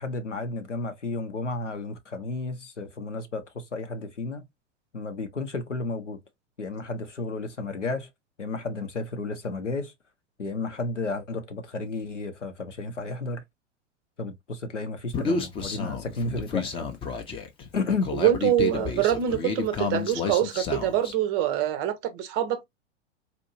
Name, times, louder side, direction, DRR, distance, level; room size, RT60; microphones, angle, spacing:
voice 1, 0.0-4.4 4.9-6.2 6.6-8.1 8.4-9.9 10.4-13.4 14.2-16.9 17.7-18.1 18.7-18.9, left 3 dB, 80° left, 0.8 m, -32 dB
Human voice, 15.1-21.1, left 4 dB, 15° left, 0.6 m, -30 dB
voice 2, 18.1-22.7, right 11 dB, 30° right, 0.6 m, -25 dB
4.2 x 2.6 x 2.6 m
figure-of-eight pair, 95°, 35 cm